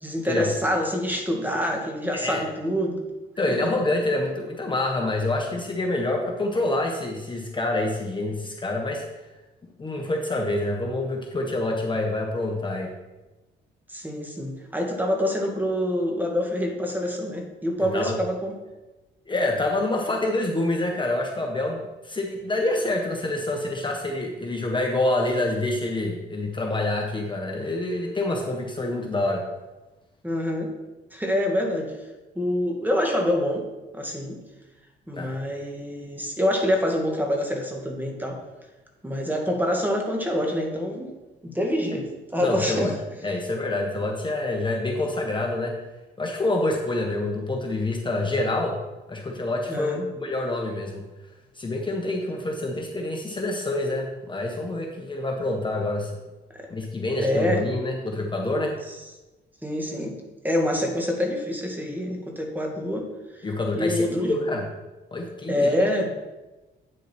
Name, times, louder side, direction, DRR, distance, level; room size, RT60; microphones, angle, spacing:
voice 1, 0.0-3.0 3.5-3.7 13.9-18.6 30.2-30.7 31.1-32.0 32.4-33.6 33.9-34.4 35.1-38.4 39.0-41.1 41.4-42.9 49.7-50.1 56.5-56.7 57.2-57.6 59.6-60.2 60.4-63.1 63.8-64.4 65.5-66.1, left 1 dB, 10° right, 1 dB, 1.8 m, -26 dB
voice 2, 2.1-2.4 3.4-9.0 9.8-12.9 17.8-18.2 19.3-29.5 35.1-35.4 42.4-42.9 43.2-45.8 46.2-48.8 49.1-51.1 51.5-56.1 56.7-58.8 63.4-64.7 65.1-65.7, left 2 dB, 25° left, 1 dB, 1.3 m, -27 dB
9.4 x 6.5 x 4.5 m, 1.1 s
cardioid pair, 90°, 20 cm